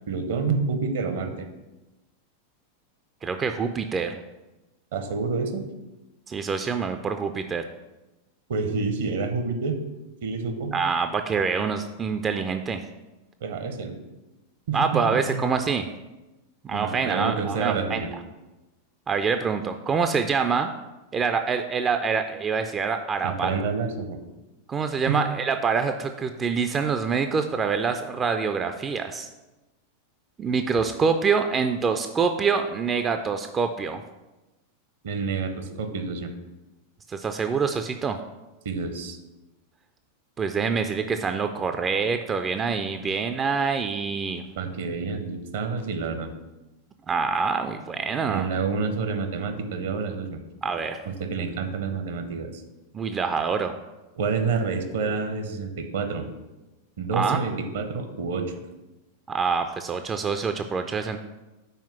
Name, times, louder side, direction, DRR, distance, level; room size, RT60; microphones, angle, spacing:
voice 1, 0.1-1.5 4.9-5.6 8.5-9.8 10.2-10.7 13.4-14.0 14.7-15.4 16.7-18.1 23.2-24.2 25.1-25.2 35.0-36.3 38.6-39.2 44.6-46.3 48.3-50.4 51.1-52.6 54.2-56.2 57.0-58.5, right 4 dB, 60° right, 7 dB, 0.8 m, -28 dB
voice 2, 3.2-4.2 6.3-7.6 10.7-12.8 14.7-15.9 16.6-18.0 19.1-20.7 21.1-23.5 24.7-29.3 30.4-34.0 37.1-38.2 40.4-44.4 47.1-48.5 50.6-51.0 52.9-53.8 57.1-57.4 59.3-61.2, right 5 dB, 20° right, 7 dB, 0.3 m, -26 dB
5.6 x 4.4 x 5.9 m, 1.1 s
figure-of-eight pair, 90°, 0 cm